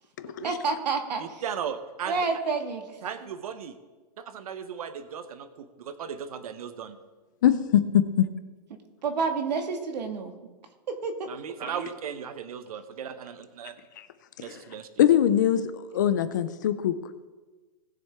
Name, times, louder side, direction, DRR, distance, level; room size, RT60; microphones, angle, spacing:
voice 1, 0.4-1.2 2.1-2.9 9.0-10.3 11.0-11.3 11.6-11.9, right 4 dB, 90° right, 6 dB, 1.9 m, -29 dB
voice 2, 1.2-2.2 3.0-3.7 4.2-7.0 11.3-13.8 14.4-14.9, right 7 dB, 60° right, 11 dB, 0.9 m, -37 dB
voice 3, 7.4-8.3 15.0-16.9, left 10 dB, 30° left, 12 dB, 0.4 m, -22 dB
19.5 x 7.1 x 3.5 m, 1.3 s
hypercardioid pair, 175°, 21 cm